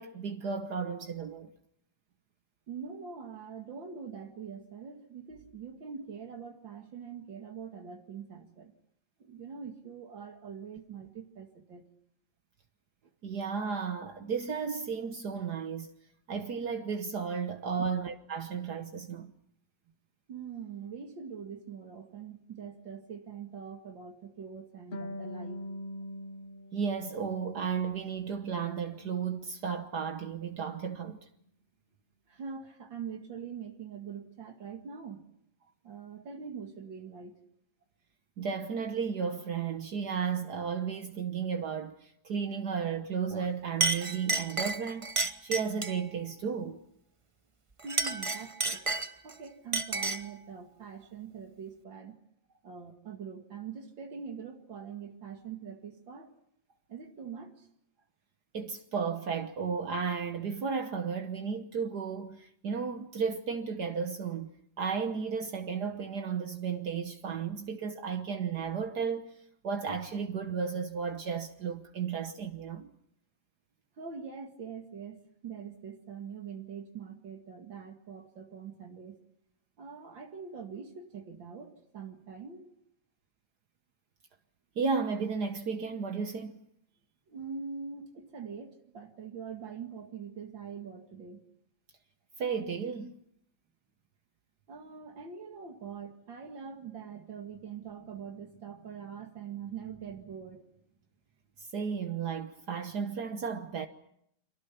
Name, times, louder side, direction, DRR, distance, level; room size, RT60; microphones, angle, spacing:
voice 1, 0.0-1.5 13.2-15.9 16.3-19.3 26.7-31.2 38.4-46.8 58.5-64.5 64.8-69.3 69.6-72.9 84.8-86.6 92.4-93.2 101.6-103.9, right 6 dB, 60° right, 1.7 m, -34 dB
voice 2, 2.7-8.7 9.2-11.8 17.8-17.9 20.3-25.6 32.3-35.2 35.8-37.4 47.8-49.0 49.2-52.2 52.6-56.3 56.9-57.7 74.0-79.2 79.8-82.7 87.3-91.4 94.7-100.6, right 6 dB, 90° right, 2.8 m, -43 dB
Harp, 24.9-28.3 28.6-29.7, left 1 dB, 35° left, 1.0 m, -44 dB
Chink clink, 43.3-43.5 43.8-46.0 47.8-49.3 49.7-50.3, right 3 dB, 20° right, 0.9 m, -31 dB
30.0 x 24.0 x 5.9 m
omnidirectional pair, 2.0 m